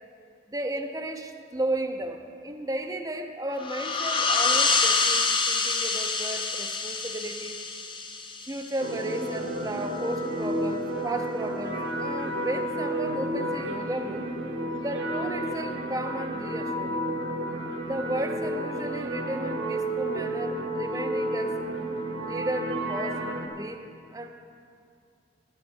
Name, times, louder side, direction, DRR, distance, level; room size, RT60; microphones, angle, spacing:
voice 1, 0.5-7.6 8.4-14.2 14.8-17.1 17.9-21.6 22.2-23.3 23.6-23.8 24.1-24.3, right 1 dB, 20° right, 5 dB, 0.5 m, -34 dB
sound 1, 3.6-8.9, left 4 dB, 25° left, 0.6 m, -26 dB
sound 2, 8.8-23.5, right 1 dB, 80° right, 0.9 m, -31 dB
8.9 x 7.8 x 7.1 m, 2.4 s
head